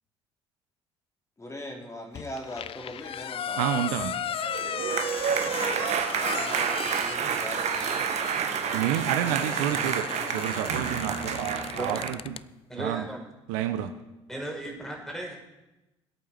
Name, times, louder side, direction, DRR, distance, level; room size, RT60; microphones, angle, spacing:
voice 1, 1.4-4.1 5.4-9.6, left 1 dB, 20° left, 1 dB, 3.4 m, -42 dB
sound 1, 2.2-12.5, left 9 dB, 40° left, 0.5 m, -36 dB
voice 2, 3.6-4.1 8.7-12.4 12.8-13.1 13.5-13.9, right 11 dB, 70° right, 8 dB, 0.9 m, -29 dB
sound 2, 4.3-12.2, right 8 dB, 50° right, 1.2 m, -29 dB
voice 3, 12.7-13.3 14.3-15.5, right 1 dB, 5° left, 1 dB, 4.7 m, -35 dB
21.0 x 8.6 x 5.9 m, 1.0 s
hypercardioid pair, 60°, 15 cm